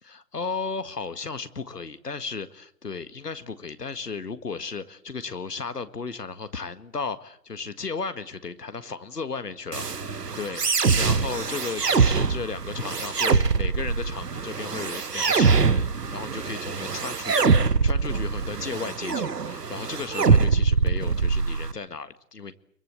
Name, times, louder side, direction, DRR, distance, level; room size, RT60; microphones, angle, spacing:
voice 1, 0.0-10.0 10.4-10.6 11.0-22.5, left 4 dB, 80° left, 12 dB, 1.9 m, -35 dB
sound 1, 9.7-21.7, right 5 dB, 80° right, 1.4 m, -23 dB
23.0 x 23.0 x 8.2 m, 0.69 s
figure-of-eight pair, 140°, 47 cm